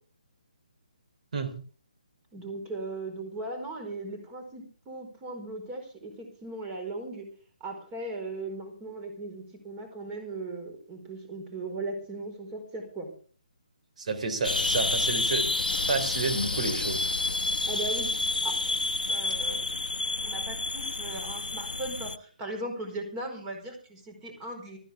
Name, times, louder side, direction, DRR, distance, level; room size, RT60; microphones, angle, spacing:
voice 1, 2.3-7.3 7.6-13.1 17.7-18.1 18.4-18.6 19.1-19.6 20.2-24.8, right 2 dB, 20° right, 4.8 m, -38 dB
voice 2, 14.0-17.1, right 4 dB, 55° right, 3.8 m, -30 dB
sound 1, 14.4-22.2, left 2 dB, 85° left, 1.0 m, -29 dB
19.0 x 14.5 x 3.7 m
figure-of-eight pair, 145°, 5 cm